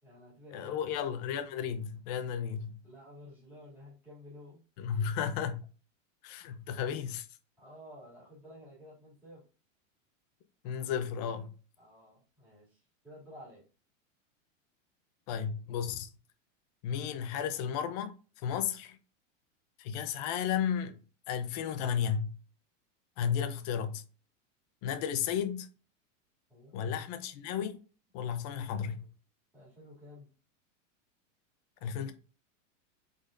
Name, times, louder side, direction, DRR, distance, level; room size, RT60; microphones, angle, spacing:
voice 1, 0.0-0.8 2.8-4.6 7.6-9.4 11.8-13.6 26.5-26.8 29.5-30.3, left 1 dB, 5° right, 2.4 m, -52 dB
voice 2, 0.5-2.8 4.8-5.7 6.2-7.3 10.6-11.5 15.3-16.1 16.8-19.0 19.8-21.0 21.3-22.3 23.2-24.0 24.8-25.7 26.7-27.8 28.1-29.0 31.8-32.1, left 8 dB, 35° left, 0.5 m, -33 dB
5.2 x 4.0 x 2.5 m
supercardioid pair, 165°, 38 cm